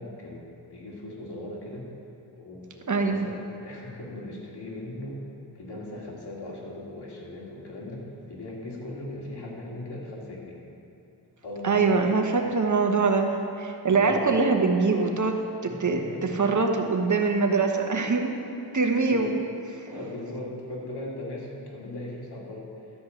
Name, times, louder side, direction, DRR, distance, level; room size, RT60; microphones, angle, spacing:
voice 1, 0.0-1.9 2.3-5.2 5.5-10.6 11.4-12.5 13.9-14.2 15.6-16.5 18.8-19.4 19.7-22.7, left 1 dB, 60° left, -4 dB, 2.8 m, -39 dB
voice 2, 2.9-3.3 11.6-18.4 18.7-19.4 19.8-20.0, right 4 dB, 40° right, 3 dB, 1.2 m, -24 dB
12.5 x 5.3 x 7.9 m, 2.9 s
cardioid pair, 70°, 44 cm